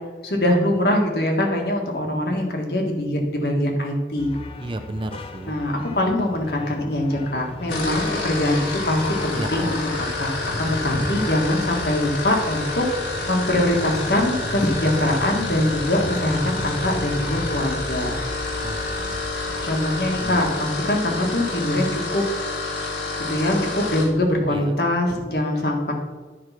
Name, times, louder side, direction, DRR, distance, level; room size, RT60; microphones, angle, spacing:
voice 1, 0.2-4.3 5.5-8.6 8.9-18.1 19.6-22.2 23.3-25.9, left 1 dB, 60° left, 1 dB, 1.7 m, -23 dB
sound 1, 4.2-17.6, left 1 dB, 30° left, 0.6 m, -36 dB
voice 2, 4.6-5.5 9.3-9.7 18.6-19.6 20.2-20.5 24.5-24.8, right 1 dB, 30° right, 7 dB, 0.5 m, -33 dB
sound 2, 7.6-24.1, left 3 dB, 75° left, 1.9 m, -29 dB
sound 3, 14.8-20.4, equal, 65° right, 0.9 m, -39 dB
9.9 x 4.8 x 5.9 m, 1.3 s
head